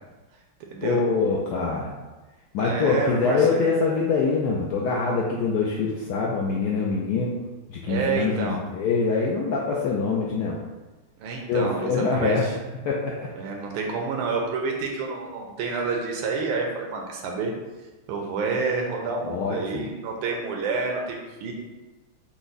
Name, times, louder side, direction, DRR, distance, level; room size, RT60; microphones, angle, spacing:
voice 1, 0.8-1.9 2.5-7.3 7.7-10.6 11.5-12.5 12.8-13.3 19.2-19.9, left 4 dB, 90° left, -3 dB, 0.9 m, -24 dB
voice 2, 2.6-3.7 7.9-8.6 11.2-12.5 13.4-17.5 18.1-21.5, right 4 dB, 90° right, 0 dB, 1.5 m, -28 dB
5.7 x 2.1 x 3.9 m, 1.2 s
omnidirectional pair, 2.3 m